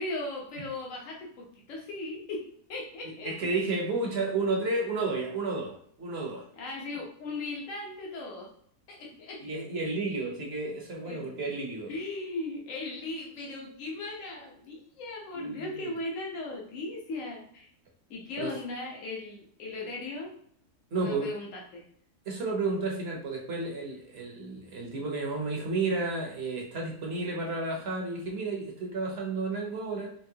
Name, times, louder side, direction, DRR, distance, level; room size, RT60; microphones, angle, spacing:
voice 1, 0.0-3.6 6.6-8.5 8.9-9.6 10.1-10.4 11.0-11.3 11.9-17.7 18.1-20.3 20.9-21.8, left 2 dB, 55° left, -1 dB, 1.3 m, -38 dB
voice 2, 3.0-6.5 9.4-11.9 15.3-15.9 18.4-18.5 20.9-21.3 22.2-30.1, right 3 dB, 45° right, -1 dB, 1.0 m, -32 dB
4.6 x 3.2 x 2.8 m, 0.63 s
omnidirectional pair, 1.7 m